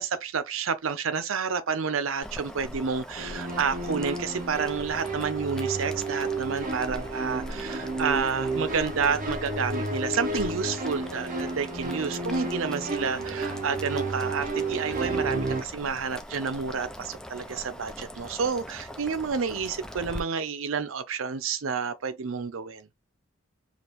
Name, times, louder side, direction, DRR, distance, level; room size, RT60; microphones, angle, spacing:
voice 1, 0.0-22.9, right 5 dB, 75° right, 0.6 m, -30 dB
Boiling, 2.2-20.2, equal, 5° left, 0.3 m, -42 dB
sound 1, 3.2-15.6, right 2 dB, 40° right, 0.7 m, -32 dB
5.1 x 2.4 x 3.0 m
head